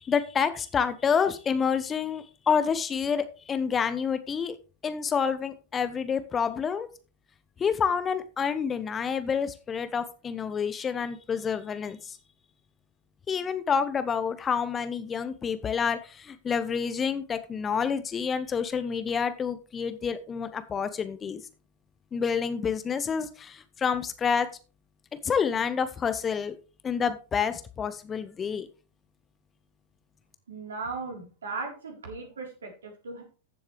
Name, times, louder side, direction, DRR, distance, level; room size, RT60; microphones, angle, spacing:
voice 1, 0.0-4.6 4.8-6.9 7.6-12.2 13.3-21.4 22.1-24.5 25.2-26.6 26.8-28.7, left 6 dB, 20° left, 12 dB, 0.9 m, -28 dB
voice 2, 30.5-33.2, right 4 dB, 70° right, 1 dB, 4.0 m, -37 dB
14.5 x 7.7 x 3.3 m, 0.35 s
figure-of-eight pair, 95°, 0 cm